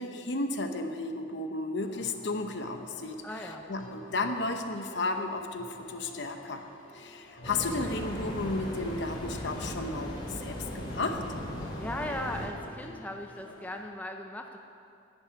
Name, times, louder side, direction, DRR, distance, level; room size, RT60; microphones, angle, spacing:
voice 1, 0.0-3.2 3.7-6.6 6.9-11.2, left 2 dB, 60° left, 6 dB, 0.9 m, -33 dB
sound 1, 1.8-13.8, left 1 dB, 80° left, 1.9 m, -50 dB
voice 2, 3.2-3.6 11.8-14.6, left 1 dB, 10° left, 3 dB, 0.5 m, -38 dB
sound 2, 7.4-12.5, equal, 25° left, 2.4 m, -37 dB
10.5 x 7.9 x 9.1 m, 2.5 s
head